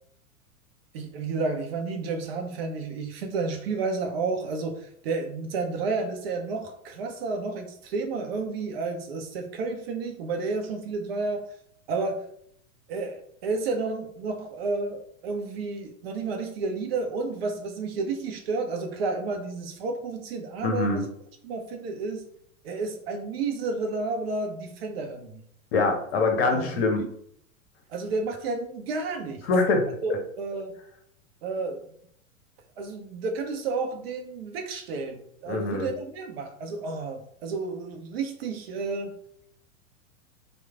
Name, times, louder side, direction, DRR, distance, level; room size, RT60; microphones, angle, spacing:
voice 1, 0.9-11.5 11.9-12.2 12.9-21.1 21.4-22.3 22.6-25.4 26.3-27.1 27.9-29.4 30.0-30.1 30.4-30.7 31.4-31.8 32.8-39.1, right 3 dB, 45° right, 4 dB, 0.6 m, -31 dB
voice 2, 20.6-21.0 25.7-27.0 29.5-30.2 35.5-35.9, left 3 dB, 50° left, 3 dB, 0.9 m, -24 dB
3.1 x 2.2 x 3.4 m, 0.66 s
figure-of-eight pair, 100°, 41 cm